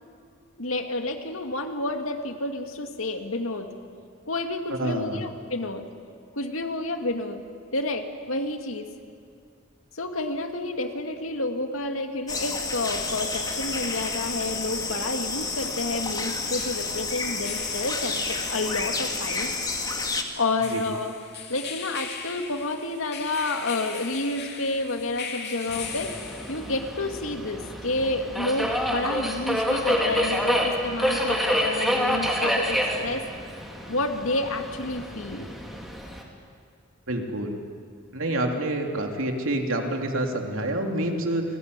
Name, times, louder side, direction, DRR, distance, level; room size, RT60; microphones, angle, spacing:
voice 1, 0.6-3.7 4.3-5.9 6.3-7.4 7.7-8.9 9.9-19.5 20.4-21.1 21.5-26.1 26.5-33.2 33.9-35.5, left 2 dB, 75° left, 5 dB, 2.3 m, -30 dB
voice 2, 4.8-5.2 20.7-20.8 37.1-37.6 38.1-41.4, right 1 dB, 70° right, 2 dB, 3.3 m, -27 dB
sound 1, 12.3-20.2, left 3 dB, 20° left, 2.1 m, -30 dB
sound 2, 15.4-26.9, left 6 dB, 50° left, 2.9 m, -40 dB
Subway metro underground, 25.7-36.2, equal, ahead, 3.3 m, -28 dB
29.0 x 20.5 x 9.8 m, 2.2 s
head